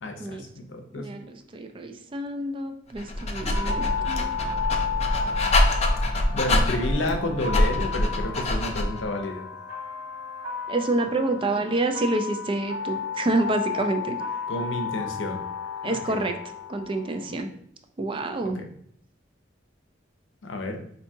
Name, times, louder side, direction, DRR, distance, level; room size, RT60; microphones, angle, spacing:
voice 1, 0.0-1.1 6.3-9.5 14.5-15.4 15.8-16.2 18.6-18.7 20.4-20.8, left 1 dB, 80° left, 4 dB, 0.6 m, -30 dB
voice 2, 1.0-4.2 10.7-14.2 15.8-16.3 16.7-17.5 18.0-18.6, right 2 dB, 30° right, 6 dB, 0.3 m, -28 dB
Dog, 2.9-9.0, left 1 dB, 35° left, 0.4 m, -25 dB
sound 1, 3.5-17.4, left 6 dB, 60° right, 1.0 m, -33 dB
4.4 x 2.7 x 2.7 m, 0.66 s
head